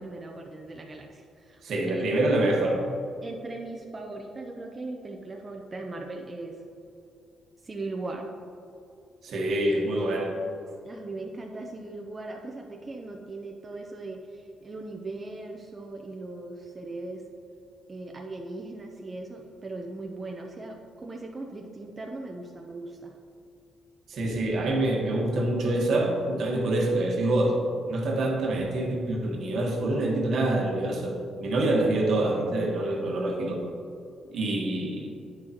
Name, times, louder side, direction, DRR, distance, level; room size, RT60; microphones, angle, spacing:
voice 1, 0.0-1.6 1.9-2.0 3.2-6.6 7.6-8.3 10.8-17.2 17.9-23.1, right 2 dB, 25° right, 0 dB, 0.7 m, -39 dB
voice 2, 1.6-2.9 9.2-10.3 24.1-27.6 27.9-33.7 34.3-35.1, right 1 dB, 65° right, 0 dB, 1.4 m, -26 dB
9.3 x 6.3 x 3.0 m, 2.6 s
cardioid pair, 90°, 0 cm